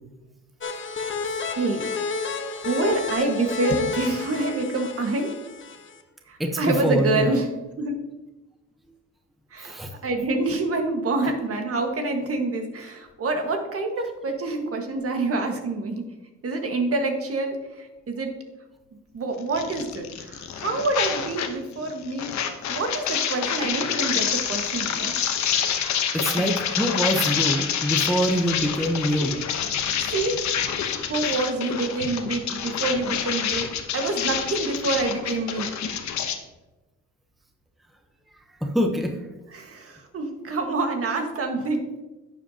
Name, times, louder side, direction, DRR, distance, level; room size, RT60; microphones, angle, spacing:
sound 1, 0.6-6.0, left 4 dB, 40° left, 1.2 m, -31 dB
voice 1, 1.5-1.9 2.5-5.3 6.3-7.5 7.8-8.0 9.5-16.0 16.4-18.3 19.1-25.1 30.1-30.4 31.0-35.7 39.5-42.0, right 2 dB, 50° right, 4 dB, 1.7 m, -27 dB
voice 2, 6.4-7.3 9.6-9.9 26.1-29.4 38.6-39.2, equal, ahead, 4 dB, 0.9 m, -24 dB
sound 2, 19.5-21.6 21.8-36.3, left 8 dB, 70° left, 1.0 m, -27 dB
11.5 x 7.8 x 2.9 m, 1.1 s
cardioid pair, 90°, 30 cm